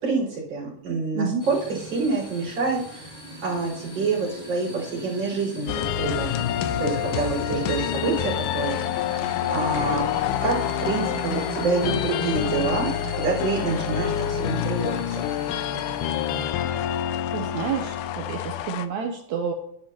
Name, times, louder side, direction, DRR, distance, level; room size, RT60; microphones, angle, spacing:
voice 1, 0.0-3.1 3.4-6.3 6.8-9.2 9.5-10.0 10.4-12.9 13.2-15.0, right 4 dB, 50° right, -8 dB, 5.3 m, -27 dB
sound 1, 1.4-16.5, right 3 dB, 20° left, 4.0 m, -39 dB
sound 2, 5.7-18.9, left 11 dB, 80° left, 2.0 m, -27 dB
voice 2, 17.3-19.5, right 6 dB, 80° right, 4 dB, 1.7 m, -29 dB
10.0 x 9.1 x 2.9 m, 0.74 s
omnidirectional pair, 3.8 m